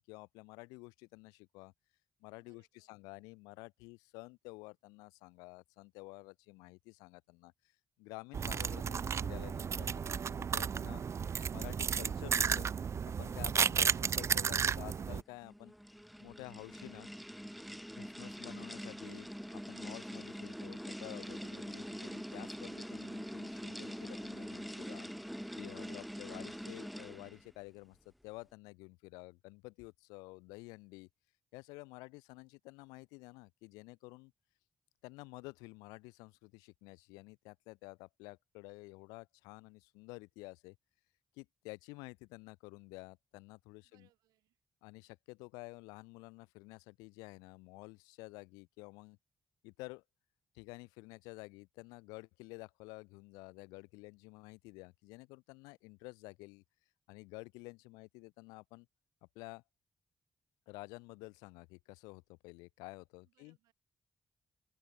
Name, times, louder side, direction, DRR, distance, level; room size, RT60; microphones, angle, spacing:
voice 1, 0.0-1.7 2.2-7.5 8.0-11.0 11.5-12.7 13.0-15.7 16.2-17.1 17.9-19.3 19.5-25.1 25.6-28.0 28.2-31.1 31.5-34.3 35.0-40.8 41.3-44.1 44.8-49.2 49.6-50.0 50.5-56.6 57.1-58.9 59.4-59.6 60.7-63.6, left 26 dB, 90° left, 0.4 m, -51 dB
voice 2, 2.4-2.9 25.7-26.3 43.8-44.6 63.2-63.7, right 16 dB, 85° right, 6.3 m, -74 dB
sound 1, 8.3-15.2, right 7 dB, 50° right, 0.4 m, -33 dB
sound 2, 15.3-27.5, equal, ahead, 1.1 m, -44 dB
hypercardioid pair, 45°, 6 cm